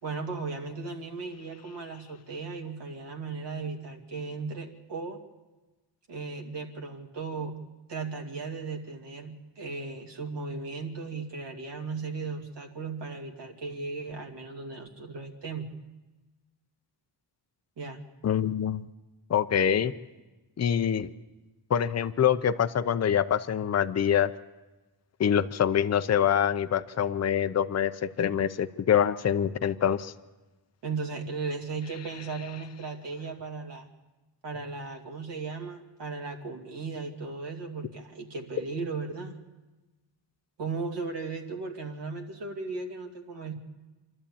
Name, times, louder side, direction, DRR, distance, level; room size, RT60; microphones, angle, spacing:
voice 1, 0.0-5.2 6.1-7.5 7.9-15.7 17.8-18.1 30.8-33.9 34.4-39.4 40.6-43.5, right 4 dB, 75° right, 3 dB, 2.5 m, -36 dB
voice 2, 18.2-18.8 19.3-19.9 20.6-21.1 21.7-24.3 25.2-30.1, left 9 dB, 40° left, 11 dB, 0.6 m, -25 dB
27.5 x 12.5 x 8.6 m, 1.2 s
wide cardioid pair, 165°, 42 cm